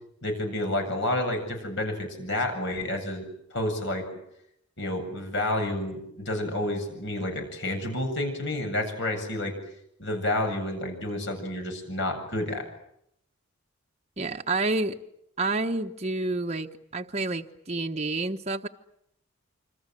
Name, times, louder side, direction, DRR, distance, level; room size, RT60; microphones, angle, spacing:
voice 1, 0.2-3.3 3.5-4.1 4.8-9.5 10.0-12.7, left 1 dB, 60° left, 5 dB, 7.7 m, -30 dB
voice 2, 14.2-15.0 15.4-18.7, right 2 dB, 30° right, 3 dB, 1.1 m, -29 dB
27.5 x 26.0 x 7.6 m, 0.76 s
head